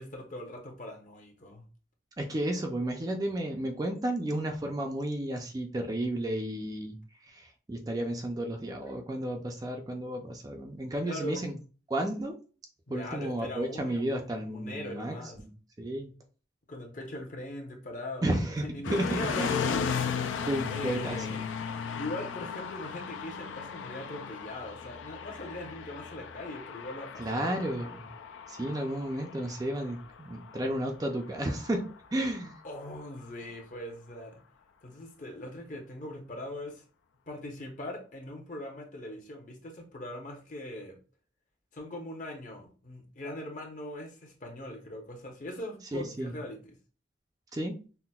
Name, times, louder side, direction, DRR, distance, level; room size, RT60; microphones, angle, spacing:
voice 1, 0.0-1.6 11.0-11.5 12.9-15.4 16.7-18.3 18.6-19.9 20.7-21.5 22.0-27.9 32.6-34.4 34.8-36.8 37.3-41.0 41.7-46.7, left 1 dB, 40° left, 0.8 m, -41 dB
voice 2, 2.2-11.6 11.9-12.4 12.9-15.5 15.8-16.1 18.2-19.5 20.4-21.4 27.2-28.1 28.5-32.6 45.9-46.3 47.5-47.8, right 1 dB, 20° right, 0.4 m, -32 dB
sound 1, 18.8-32.9, left 6 dB, 80° left, 0.3 m, -36 dB
5.6 x 2.1 x 2.3 m
head